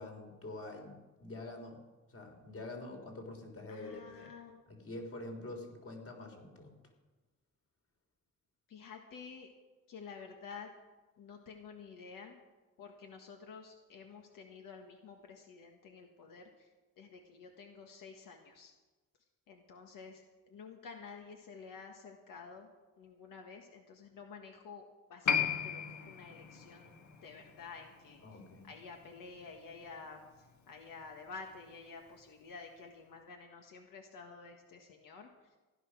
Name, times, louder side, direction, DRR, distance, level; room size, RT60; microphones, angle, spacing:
voice 1, 0.0-1.8 2.1-4.3 4.7-6.8 28.2-28.7, left 2 dB, 45° left, 3 dB, 3.3 m, -46 dB
voice 2, 3.7-4.6 8.7-9.5 9.9-10.7 11.2-12.4 12.8-16.7 17.0-18.7 19.5-22.7 23.0-24.8 25.1-26.9 27.2-28.2 28.6-35.3, left 5 dB, 85° left, 3 dB, 1.6 m, -50 dB
Piano, 25.3-32.2 32.5-32.6, left 7 dB, 60° left, 1.7 m, -39 dB
16.0 x 11.0 x 6.2 m, 1.2 s
cardioid pair, 105°, 32 cm